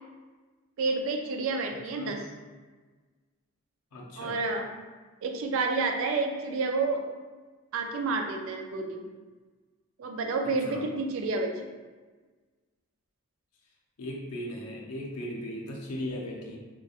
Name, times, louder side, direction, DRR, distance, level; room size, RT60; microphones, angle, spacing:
voice 1, 0.8-2.2 4.2-4.7 5.2-7.0 7.7-9.0 10.0-11.5, right 3 dB, 60° right, 4 dB, 0.3 m, -29 dB
voice 2, 3.9-4.4 10.6-10.8 14.0-16.6, left 1 dB, 85° left, -1 dB, 0.5 m, -37 dB
2.8 x 2.2 x 2.3 m, 1.3 s
head